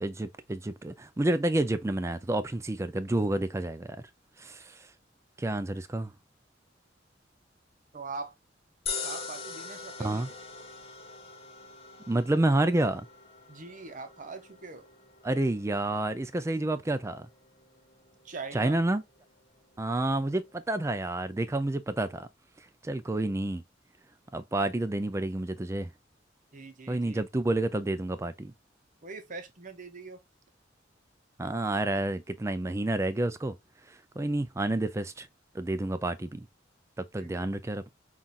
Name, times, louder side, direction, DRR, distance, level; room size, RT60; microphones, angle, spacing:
voice 1, 0.0-4.0 4.4-4.8 5.4-6.1 10.0-10.3 12.1-13.1 15.2-17.3 18.5-19.0 19.8-22.3 22.6-23.6 24.3-25.9 26.9-28.5 31.4-33.6 33.9-35.3 35.5-36.5 37.0-37.9, right 2 dB, 15° right, 0.3 m, -29 dB
voice 2, 7.9-8.4 9.0-10.3 13.5-14.9 18.2-18.8 26.5-27.3 29.0-30.2 37.2-37.5, right 4 dB, 40° right, 0.7 m, -42 dB
sound 1, 8.9-21.2, left 5 dB, 30° left, 0.7 m, -44 dB
5.5 x 2.4 x 2.4 m
head